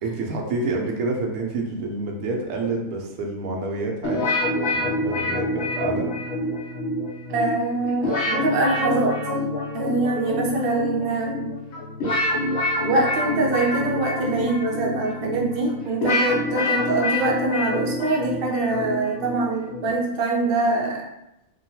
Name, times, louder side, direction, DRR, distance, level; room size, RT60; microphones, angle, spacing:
voice 1, 0.0-4.3 4.7-6.1, right 3 dB, 85° right, 1 dB, 1.0 m, -28 dB
sound 1, 4.0-20.0, left 2 dB, 70° left, 1.1 m, -26 dB
voice 2, 7.3-9.2 9.7-11.5 12.8-21.0, right 3 dB, 55° right, -2 dB, 0.6 m, -24 dB
2.9 x 2.2 x 2.7 m, 0.87 s
omnidirectional pair, 1.5 m